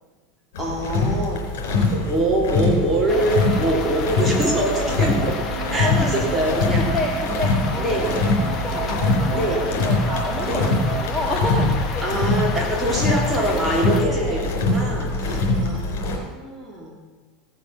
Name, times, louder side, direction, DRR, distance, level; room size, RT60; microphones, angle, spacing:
sound 1, 0.5-16.2, left 3 dB, 75° left, 3.6 m, -23 dB
voice 1, 0.6-1.4 1.9-5.3 5.7-6.8 7.8-8.1 9.3-9.6 10.5-10.7 12.0-17.0, right 1 dB, 10° right, -3 dB, 3.7 m, -24 dB
sound 2, 3.1-14.1, left 6 dB, 40° left, 1.4 m, -33 dB
sound 3, 3.1-11.1, right 9 dB, 50° right, 1.6 m, -32 dB
voice 2, 5.8-6.1 6.5-10.7 11.0-12.7 14.0-14.5, left 1 dB, 15° left, -3 dB, 2.0 m, -30 dB
16.5 x 6.8 x 6.1 m, 1.3 s
supercardioid pair, 110°, 0 cm